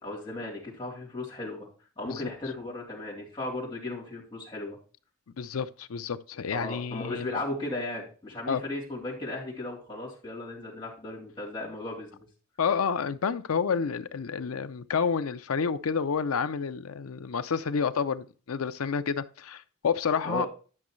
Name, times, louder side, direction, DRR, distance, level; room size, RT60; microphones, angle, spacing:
voice 1, 0.0-1.7 2.0-4.8 6.5-12.2 20.2-20.5, left 2 dB, 25° left, 3.2 m, -36 dB
voice 2, 5.4-7.4 8.5-8.6 12.6-20.5, left 6 dB, 80° left, 0.6 m, -29 dB
11.0 x 6.2 x 3.1 m
head